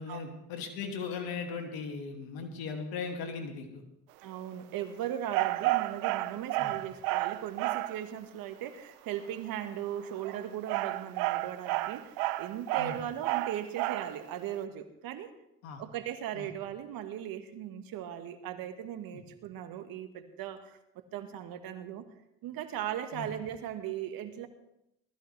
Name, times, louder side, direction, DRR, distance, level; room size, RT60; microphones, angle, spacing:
voice 1, 0.0-3.8 6.6-6.7 12.8-13.0 15.6-15.8 16.3-16.5 19.1-19.2 23.1-23.3, left 5 dB, 80° left, 4 dB, 2.4 m, -38 dB
voice 2, 4.2-15.3 15.8-20.8 21.1-22.1 22.4-24.5, right 10 dB, 75° right, 8 dB, 1.6 m, -38 dB
sound 1, 5.3-8.0 10.1-14.2, right 18 dB, 90° right, 0.6 m, -31 dB
19.0 x 14.0 x 3.3 m, 0.83 s
supercardioid pair, 65°, 36 cm